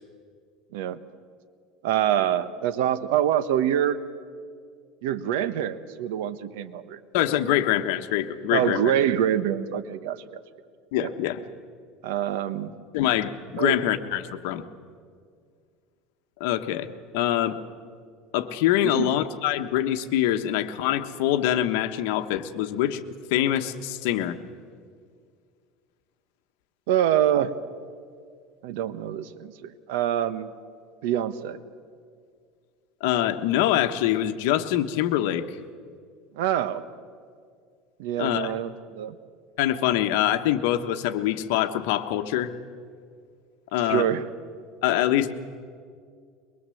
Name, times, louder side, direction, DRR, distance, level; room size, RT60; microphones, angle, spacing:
voice 1, 1.8-4.0 5.0-7.0 8.5-10.3 11.0-11.1 12.0-12.7 13.6-13.8 18.8-19.1 26.9-27.5 28.6-30.5 31.0-31.6 36.4-36.8 38.0-39.2 43.8-44.3, right 10 dB, 80° right, 13 dB, 1.1 m, -25 dB
voice 2, 7.1-8.8 10.9-11.4 12.9-14.6 16.4-17.6 18.3-23.0 23.3-24.4 33.0-35.6 38.2-38.5 39.6-42.5 43.7-44.1 44.8-45.3, left 12 dB, 70° left, 8 dB, 1.3 m, -24 dB
22.5 x 22.5 x 7.8 m, 2.1 s
cardioid pair, 155°, 0 cm